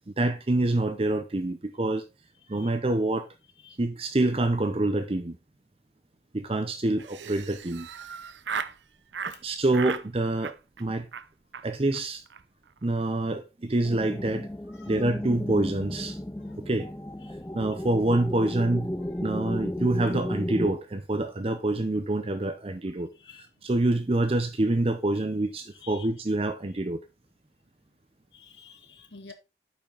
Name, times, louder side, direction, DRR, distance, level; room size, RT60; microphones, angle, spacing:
voice 1, 0.0-2.1 2.5-3.3 3.8-5.4 6.3-7.9 9.4-11.1 11.6-12.2 12.8-14.5 14.9-16.2 16.6-16.9 17.5-18.9 19.2-23.1 23.6-27.0, right 2 dB, 30° right, 0.6 m, -26 dB
Laughter, 7.0-8.8 9.1-9.4 9.7-10.1 10.4-10.8 11.1-11.3 11.5-11.6 11.9-12.0 12.3-12.4 12.7-13.0, right 6 dB, 85° right, 0.6 m, -36 dB
voice 2, 9.3-9.6 14.7-15.1 16.4-16.6 17.2-17.4 23.1-23.7 25.1-25.2 25.7-26.1 28.3-29.3, left 5 dB, 85° left, 1.5 m, -51 dB
sound 1, 13.8-20.7, left 1 dB, 10° left, 0.5 m, -34 dB
8.6 x 5.8 x 3.8 m
head